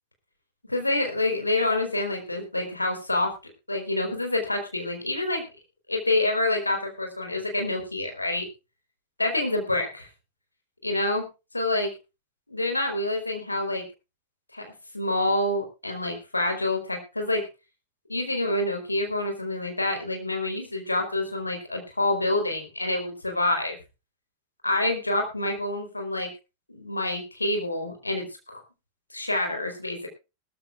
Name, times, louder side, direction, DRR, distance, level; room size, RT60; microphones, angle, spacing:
voice 1, 0.7-3.3 3.7-5.4 5.9-8.5 9.2-10.1 10.8-11.3 11.5-11.9 12.5-13.8 14.5-17.5 18.1-23.8 24.6-26.3 26.7-28.6 29.1-30.1, left 2 dB, 85° left, 3 dB, 4.2 m, -27 dB
20.0 x 13.5 x 2.5 m, 0.28 s
figure-of-eight pair, 90°, 0 cm